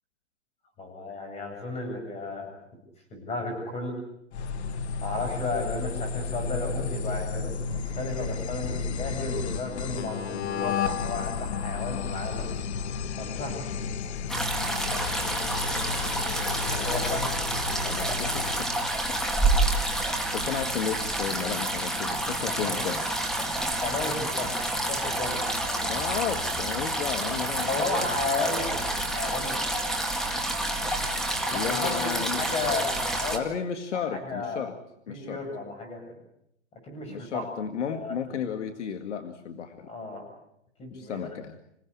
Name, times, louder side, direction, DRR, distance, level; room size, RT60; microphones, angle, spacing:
voice 1, 0.8-2.5 3.1-3.9 5.0-12.5 13.2-13.6 16.7-17.3 22.2-22.9 23.8-24.5 24.9-25.8 27.7-29.6 31.5-33.4 34.1-34.6 35.1-36.0 36.8-37.5 37.9-38.4 39.8-40.3 40.8-41.3, left 3 dB, 15° left, 4 dB, 7.7 m, -33 dB
sound 1, 4.3-18.7, left 5 dB, 65° left, 1.7 m, -32 dB
sound 2, 14.3-33.4, right 1 dB, ahead, 2.1 m, -28 dB
voice 2, 17.8-18.7 20.3-23.0 25.8-27.7 28.0-28.1 31.5-32.5 33.3-34.7 35.1-35.4 37.1-39.9 40.9-41.6, left 7 dB, 85° left, 8 dB, 2.0 m, -33 dB
27.5 x 17.0 x 8.4 m, 0.78 s
hypercardioid pair, 150°, 35 cm